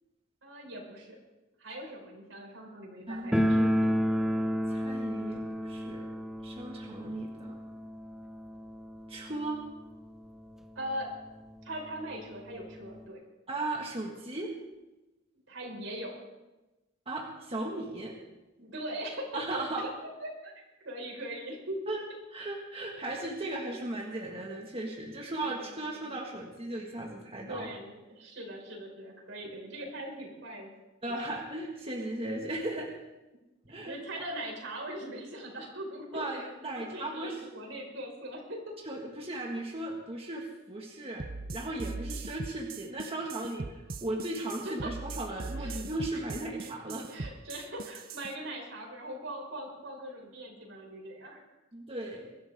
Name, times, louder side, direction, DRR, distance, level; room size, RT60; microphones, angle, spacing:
voice 1, 0.4-1.2 1.6-4.0 10.8-11.1 11.6-13.2 15.5-16.1 18.6-19.9 20.2-20.5 20.8-22.0 25.4-26.1 27.4-30.7 31.1-31.2 33.7-38.6 44.7-44.9 45.6-45.8 46.1-46.2 46.8-51.4, right 1 dB, 80° right, -1 dB, 5.3 m, -41 dB
voice 2, 3.1-3.8 4.7-6.1 6.4-7.6 9.1-9.6 13.5-14.5 17.1-18.1 19.3-19.9 21.9-22.0 22.3-27.7 31.0-32.9 33.7-34.2 36.1-37.4 38.9-41.2 41.5-47.0 51.7-52.3, right 2 dB, 30° right, -1 dB, 1.9 m, -37 dB
sound 1, 3.3-10.0 10.3-10.4 10.6-10.7 11.5-11.6 11.9-13.1, equal, ahead, 0.8 m, -31 dB
sound 2, 41.2-48.3, right 3 dB, 50° right, 0.7 m, -40 dB
23.0 x 13.0 x 3.7 m, 1.1 s
head